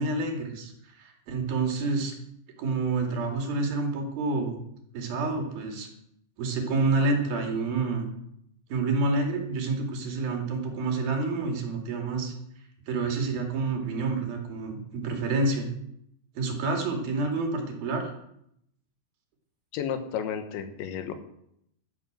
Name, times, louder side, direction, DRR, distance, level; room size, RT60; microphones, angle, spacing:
voice 1, 0.0-2.1 2.6-4.6 4.9-5.9 6.4-8.1 8.7-12.3 12.9-15.7 16.4-18.1, right 3 dB, 60° right, 2 dB, 4.1 m, -28 dB
voice 2, 19.7-21.1, left 8 dB, 90° left, 8 dB, 3.7 m, -32 dB
12.5 x 10.5 x 7.5 m, 0.74 s
omnidirectional pair, 5.1 m